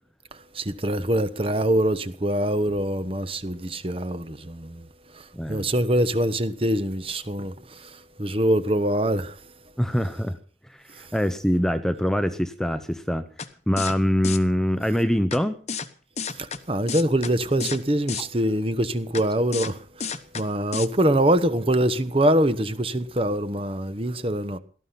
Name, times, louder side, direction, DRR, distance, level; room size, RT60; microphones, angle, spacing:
voice 1, 0.5-4.9 5.1-9.4 11.0-11.1 16.3-24.6, right 1 dB, 30° right, 1.2 m, -24 dB
voice 2, 5.3-5.7 9.8-10.4 10.7-13.2 13.7-15.6, equal, 5° left, 0.9 m, -24 dB
sound 1, 13.4-13.5 13.8-13.9 14.2-14.4 15.3-15.4 15.7-15.9 16.2-16.6 16.9-17.3 17.6-17.8 18.1-18.2 19.1-19.2 19.5-19.7 20.0-20.4 20.7-20.9, left 6 dB, 35° left, 1.1 m, -31 dB
18.0 x 13.5 x 5.9 m
head